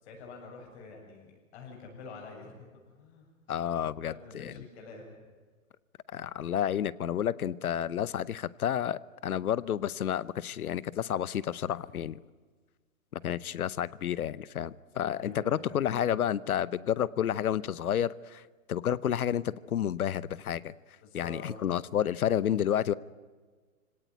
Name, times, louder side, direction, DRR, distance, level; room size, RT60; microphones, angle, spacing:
voice 1, 0.0-3.3 4.0-5.2 15.1-15.8 21.0-21.8, left 3 dB, 50° left, 1 dB, 7.3 m, -47 dB
voice 2, 3.5-4.6 6.1-12.2 13.1-18.4 18.7-20.7 21.1-22.9, left 10 dB, 85° left, 20 dB, 0.9 m, -30 dB
25.0 x 18.0 x 9.3 m, 1.4 s
hypercardioid pair, 150°, 43 cm